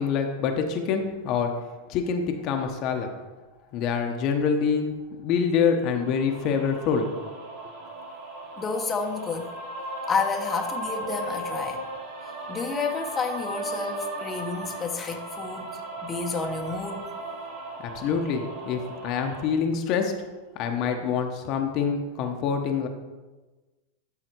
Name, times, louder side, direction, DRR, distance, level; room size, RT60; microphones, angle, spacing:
voice 1, 0.0-1.5 1.9-3.1 3.7-4.9 5.2-7.1 17.8-20.1 20.5-22.9, left 6 dB, 45° left, 4 dB, 1.0 m, -26 dB
sound 1, 5.9-19.4, right 2 dB, 55° right, 2.6 m, -36 dB
voice 2, 8.6-9.5 10.1-11.8 12.5-17.1, left 5 dB, 20° left, 2 dB, 1.0 m, -30 dB
12.0 x 4.1 x 4.6 m, 1.2 s
hypercardioid pair, 110°, 0 cm